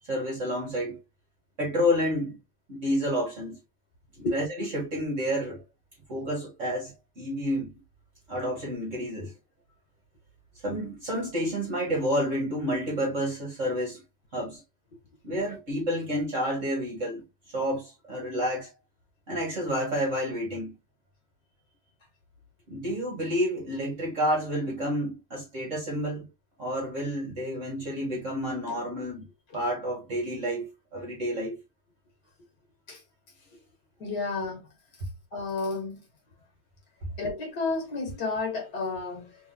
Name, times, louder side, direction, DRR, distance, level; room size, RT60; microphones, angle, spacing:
voice 1, 0.0-1.0 1.6-2.4 2.7-3.6 4.3-5.6 6.1-7.7 8.3-9.3 10.6-14.0 14.3-14.6 15.2-17.2 17.5-18.7 19.3-20.7 22.7-26.3 26.6-29.3 29.5-31.6, equal, 40° right, 1.3 m, -29 dB
voice 2, 34.0-34.6 35.3-36.0 37.2-39.4, left 3 dB, 55° left, 1.9 m, -31 dB
3.5 x 3.5 x 2.6 m
omnidirectional pair, 2.3 m